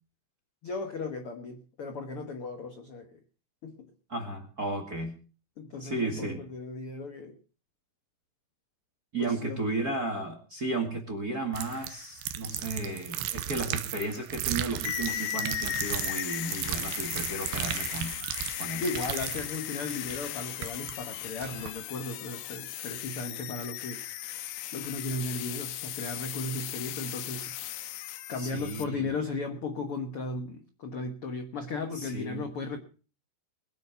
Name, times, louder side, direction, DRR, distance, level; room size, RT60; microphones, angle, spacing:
voice 1, 0.6-3.2 3.6-3.7 5.6-7.4 9.2-9.6 18.8-28.0 28.3-32.8, left 3 dB, 60° left, 5 dB, 1.4 m, -36 dB
voice 2, 4.1-5.1 5.8-6.4 9.1-18.8 28.4-29.1 31.9-32.5, right 2 dB, 35° right, 4 dB, 1.7 m, -34 dB
sound 1, 11.5-20.9 21.4-21.7, right 11 dB, 85° right, 3.0 m, -35 dB
sound 2, 14.8-28.8, left 12 dB, 80° left, 2.8 m, -37 dB
21.5 x 9.3 x 5.7 m, 0.38 s
omnidirectional pair, 4.5 m